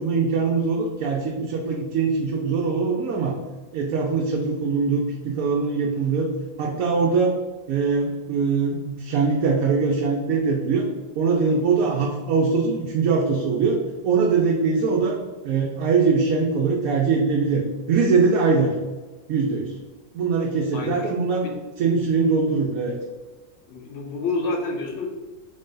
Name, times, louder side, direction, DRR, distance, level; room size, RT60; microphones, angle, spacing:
voice 1, 0.0-3.4 3.7-6.3 6.6-7.4 7.7-10.9 11.1-18.7 19.3-19.7 20.1-21.4 21.8-23.0, right 4 dB, 85° right, -1 dB, 1.0 m, -22 dB
voice 2, 20.7-21.1 21.4-21.5 23.7-25.1, left 3 dB, 65° left, 0 dB, 1.1 m, -28 dB
3.6 x 2.6 x 3.7 m, 1.2 s
omnidirectional pair, 1.4 m